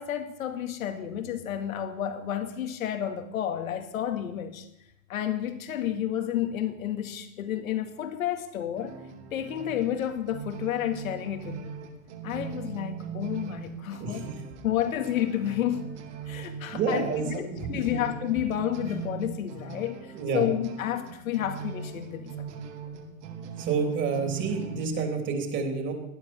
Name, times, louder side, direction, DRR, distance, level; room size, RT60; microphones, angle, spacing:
voice 1, 0.0-4.7 5.1-9.0 9.3-11.7 12.2-14.3 14.6-15.9 16.3-22.3, left 10 dB, 75° left, 5 dB, 2.2 m, -30 dB
sound 1, 8.8-24.8, right 6 dB, 60° right, 3.2 m, -40 dB
voice 2, 16.7-18.0 20.1-20.5 23.6-25.9, right 5 dB, 25° right, 2 dB, 3.4 m, -29 dB
18.5 x 12.0 x 4.4 m, 0.81 s
hypercardioid pair, 145°, 41 cm